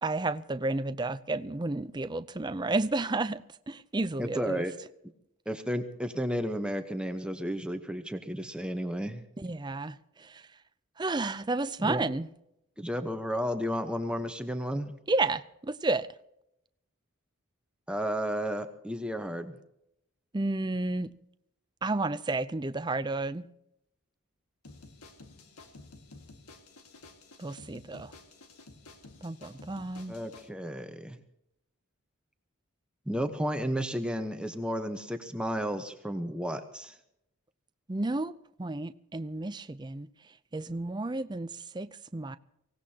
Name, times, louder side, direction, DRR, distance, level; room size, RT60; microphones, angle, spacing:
voice 1, 0.0-4.7 9.4-10.4 11.0-12.3 15.1-16.1 20.3-21.1 21.8-23.4 27.4-28.1 29.2-30.2 37.9-38.3 38.6-40.1 40.5-42.4, right 2 dB, 20° right, 0.5 m, -31 dB
voice 2, 4.2-4.7 5.5-9.2 11.8-12.0 12.8-14.9 17.9-19.6 30.1-31.2 33.1-37.0, equal, 5° right, 0.9 m, -32 dB
sound 1, 24.6-30.5, left 3 dB, 90° left, 1.8 m, -52 dB
24.5 x 17.5 x 2.9 m
head